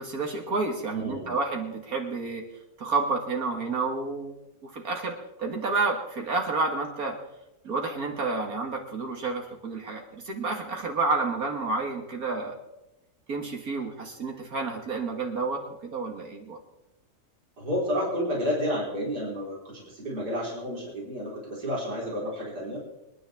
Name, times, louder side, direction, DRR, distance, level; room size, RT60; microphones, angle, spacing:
voice 1, 0.0-2.4 2.8-4.4 4.6-7.2 7.6-12.6 13.3-16.6, right 3 dB, 65° right, 2 dB, 2.1 m, -30 dB
voice 2, 0.9-1.3 17.6-22.8, equal, 80° right, -4 dB, 4.8 m, -31 dB
26.5 x 10.5 x 3.5 m, 0.95 s
omnidirectional pair, 1.7 m